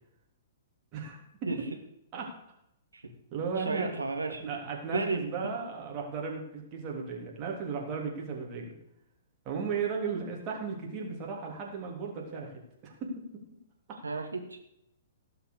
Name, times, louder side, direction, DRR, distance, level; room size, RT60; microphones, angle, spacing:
voice 1, 0.9-1.5 2.1-2.3 3.3-3.9 4.4-8.8 9.4-12.5 12.8-13.4 13.9-14.0, right 5 dB, 30° right, 0 dB, 3.4 m, -35 dB
voice 2, 3.6-4.4 4.9-5.3 14.0-14.6, right 3 dB, 75° right, 3 dB, 2.4 m, -32 dB
17.5 x 5.9 x 6.7 m, 0.81 s
figure-of-eight pair, 115°, 0 cm